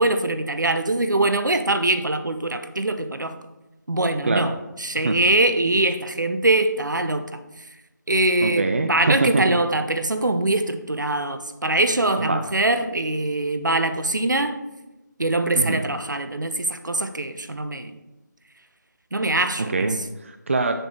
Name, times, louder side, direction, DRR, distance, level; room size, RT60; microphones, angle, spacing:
voice 1, 0.0-3.4 3.9-7.4 8.1-14.6 15.2-17.9 19.1-19.9, right 2 dB, 75° right, 9 dB, 0.7 m, -23 dB
voice 2, 8.4-9.6 12.2-12.4 15.6-15.8 19.6-20.7, right 3 dB, 40° right, 7 dB, 0.4 m, -24 dB
6.7 x 4.1 x 4.6 m, 1.0 s
figure-of-eight pair, 160°, 10 cm